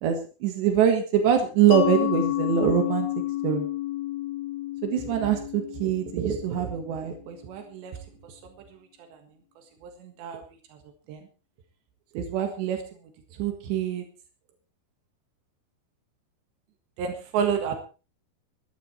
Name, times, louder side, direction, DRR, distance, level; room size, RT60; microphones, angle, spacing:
voice 1, 0.0-3.1 3.4-3.7 4.8-7.9 8.2-8.3 9.1-9.2 9.8-10.4 11.1-11.2 12.2-12.8 13.4-14.0 17.0-17.7, right 8 dB, 80° right, 5 dB, 3.9 m, -25 dB
Mallet percussion, 1.7-7.1, left 15 dB, 65° left, 3.5 m, -30 dB
16.0 x 12.0 x 4.4 m, 0.34 s
omnidirectional pair, 4.9 m